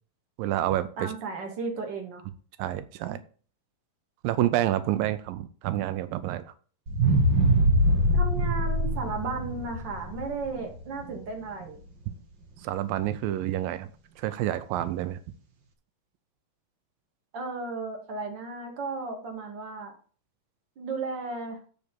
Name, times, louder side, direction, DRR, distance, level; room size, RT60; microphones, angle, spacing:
voice 1, 0.4-1.1 2.6-3.2 4.2-6.5 12.6-13.9 14.2-15.2, right 13 dB, 90° right, 12 dB, 2.4 m, -28 dB
voice 2, 1.0-2.2 8.1-11.8 17.3-19.9 20.8-21.6, right 3 dB, 35° right, 3 dB, 2.3 m, -34 dB
sound 1, 6.9-11.1 11.6-11.7, right 1 dB, 70° right, 1.0 m, -23 dB
8.8 x 5.0 x 7.3 m, 0.42 s
omnidirectional pair, 4.0 m